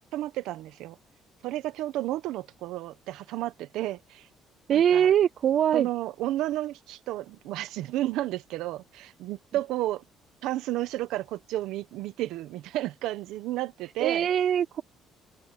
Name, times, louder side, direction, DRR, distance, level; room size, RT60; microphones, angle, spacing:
voice 1, 0.1-1.0 1.4-4.3 4.7-5.1 5.7-10.0 10.4-14.3, right 15 dB, 80° right, 1.2 m, -32 dB
voice 2, 4.7-5.9 14.0-14.8, right 9 dB, 50° right, 0.5 m, -22 dB
open air
cardioid pair, 140°, 0 cm